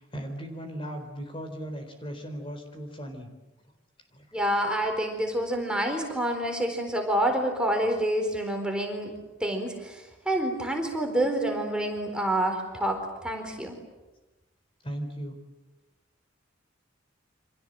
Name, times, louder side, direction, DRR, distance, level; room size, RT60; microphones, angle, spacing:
voice 1, 0.0-3.3 4.1-4.4 14.8-15.4, equal, 25° left, 5 dB, 4.1 m, -37 dB
voice 2, 4.3-9.1 9.4-13.8, right 1 dB, 5° right, 3 dB, 4.2 m, -28 dB
29.5 x 26.0 x 7.8 m, 1.1 s
head